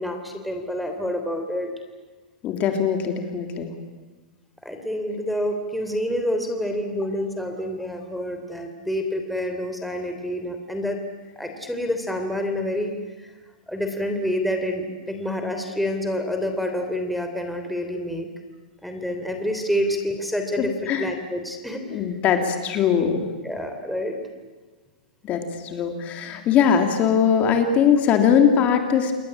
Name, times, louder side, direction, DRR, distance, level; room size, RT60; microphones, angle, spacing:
voice 1, 0.0-1.7 4.6-11.0 11.4-13.3 13.7-18.3 18.8-20.7 21.0-22.0 23.4-24.2, left 1 dB, ahead, 4 dB, 3.4 m, -28 dB
voice 2, 2.4-3.7 20.6-21.1 21.9-23.3 25.2-29.2, left 7 dB, 30° left, 5 dB, 3.2 m, -21 dB
28.5 x 21.5 x 8.8 m, 1.3 s
hypercardioid pair, 130°, 5 cm